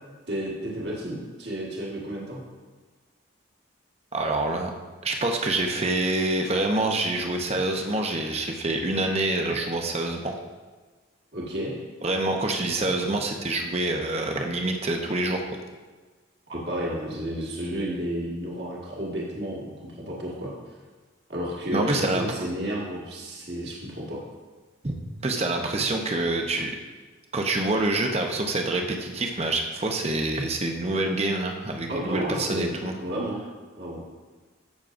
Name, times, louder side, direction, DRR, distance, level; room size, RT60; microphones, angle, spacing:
voice 1, 0.3-2.4 11.3-11.8 16.5-20.5 21.3-24.2 31.9-33.4 33.8-34.0, right 1 dB, 55° right, -4 dB, 1.7 m, -32 dB
voice 2, 4.1-4.7 5.0-10.3 12.0-15.4 21.7-22.3 24.8-26.7 27.3-33.0, right 2 dB, 30° right, 3 dB, 0.8 m, -26 dB
14.5 x 6.4 x 2.6 m, 1.3 s
head